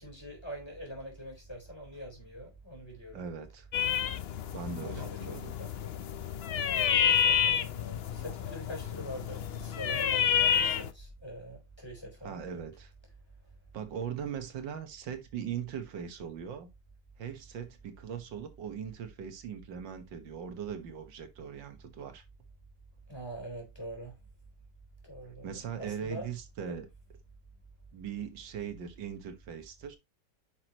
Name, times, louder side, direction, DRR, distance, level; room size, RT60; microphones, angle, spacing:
voice 1, 0.0-3.2 4.8-6.0 6.4-12.6 23.1-24.2 25.0-26.3, equal, 15° left, 4.0 m, -44 dB
voice 2, 3.1-3.7 4.5-5.5 12.2-12.9 13.7-16.7 17.2-22.2 25.4-26.9 27.9-30.0, right 7 dB, 90° right, 2.0 m, -40 dB
sound 1, 3.7-10.9, left 9 dB, 80° left, 0.5 m, -29 dB
9.6 x 6.1 x 3.0 m
omnidirectional pair, 1.9 m